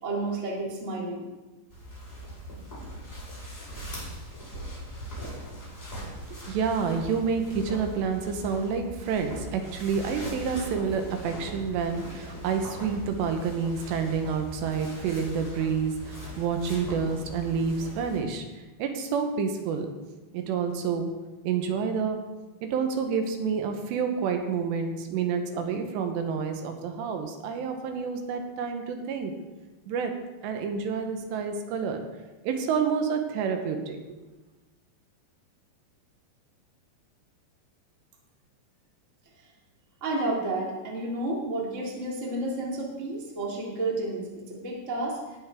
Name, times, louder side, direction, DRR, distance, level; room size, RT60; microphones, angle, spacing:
voice 1, 0.0-1.3 40.0-45.2, right 2 dB, 30° right, -3 dB, 1.5 m, -31 dB
sound 1, 1.7-18.2, equal, 10° left, 3.9 m, -40 dB
voice 2, 6.3-18.5 18.8-19.9 20.3-21.1 21.4-22.2 22.7-29.3 29.9-30.1 30.4-32.0 32.4-34.0, right 6 dB, 85° right, 5 dB, 3.1 m, -29 dB
18.0 x 7.1 x 3.5 m, 1.2 s
omnidirectional pair, 5.0 m